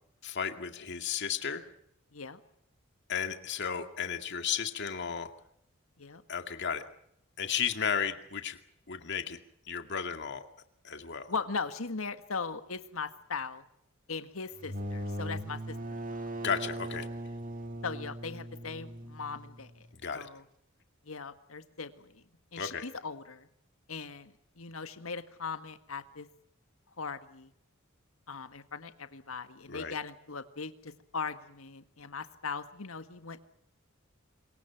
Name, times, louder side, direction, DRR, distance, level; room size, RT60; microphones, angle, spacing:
voice 1, 0.2-1.7 3.1-5.3 6.3-6.8 7.4-8.6 8.9-9.4 9.7-10.5 10.8-11.3 16.4-17.1 20.0-20.3 22.6-22.8 29.7-29.9, left 7 dB, 55° left, 7 dB, 2.2 m, -34 dB
voice 2, 11.3-13.6 14.1-16.0 17.8-19.9 20.1-20.4 21.0-22.2 22.5-23.5 23.9-26.3 27.0-27.5 28.3-33.4, left 4 dB, 80° left, 10 dB, 1.7 m, -39 dB
sound 1, 14.5-20.1, right 1 dB, 40° right, 1.9 m, -39 dB
26.5 x 23.0 x 6.0 m, 0.73 s
head